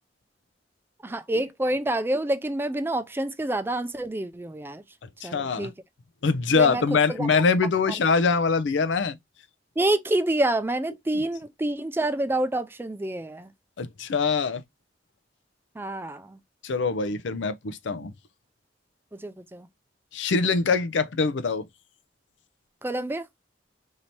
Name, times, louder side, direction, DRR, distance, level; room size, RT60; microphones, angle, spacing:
voice 1, 1.0-4.8 5.2-5.7 6.5-7.3 9.8-13.5 15.8-16.4 19.2-19.7 22.8-23.3, right 1 dB, 10° right, 0.3 m, -27 dB
voice 2, 5.2-5.7 6.2-9.2 13.8-14.6 16.6-18.1 20.1-21.7, left 4 dB, 85° left, 0.5 m, -23 dB
2.9 x 2.7 x 4.4 m
head